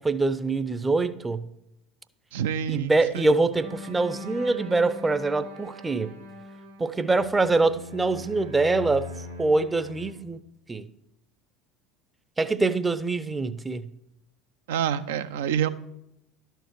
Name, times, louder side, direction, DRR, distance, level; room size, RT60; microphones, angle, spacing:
voice 1, 0.0-1.4 2.7-6.1 6.8-9.1 9.4-10.4 10.7-10.8 12.4-13.9, right 3 dB, 15° right, 0.6 m, -24 dB
voice 2, 2.3-3.3 14.7-15.7, right 9 dB, 65° right, 0.5 m, -27 dB
sound 1, 3.5-10.1, left 2 dB, 80° right, 1.8 m, -41 dB
12.0 x 4.6 x 6.5 m
figure-of-eight pair, 70°, 0 cm